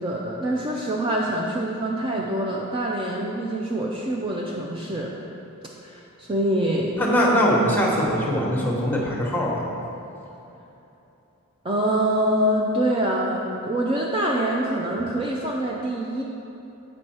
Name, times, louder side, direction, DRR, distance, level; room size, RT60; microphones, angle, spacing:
voice 1, 0.0-5.2 5.8-7.0 11.6-16.2, right 1 dB, 25° right, -2 dB, 0.4 m, -25 dB
voice 2, 7.0-9.6, equal, 10° left, -2 dB, 1.0 m, -21 dB
8.0 x 5.3 x 4.3 m, 3.0 s
head